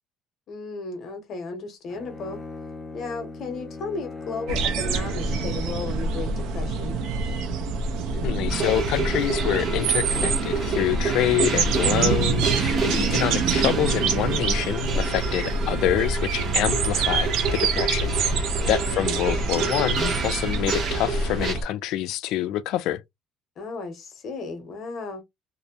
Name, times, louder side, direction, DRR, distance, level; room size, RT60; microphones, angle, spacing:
voice 1, 0.5-2.4 2.9-7.0 12.9-13.3 18.5-19.0 23.6-25.2, left 3 dB, 45° left, 0.7 m, -34 dB
Bowed string instrument, 1.9-6.1, left 3 dB, 10° left, 0.5 m, -39 dB
sound 1, 4.5-21.6, right 4 dB, 75° right, 0.5 m, -26 dB
voice 2, 8.1-23.0, left 13 dB, 70° left, 0.3 m, -26 dB
sound 2, 8.5-21.5, right 4 dB, 35° right, 0.8 m, -30 dB
2.5 x 2.0 x 2.7 m
cardioid pair, 155°, 0 cm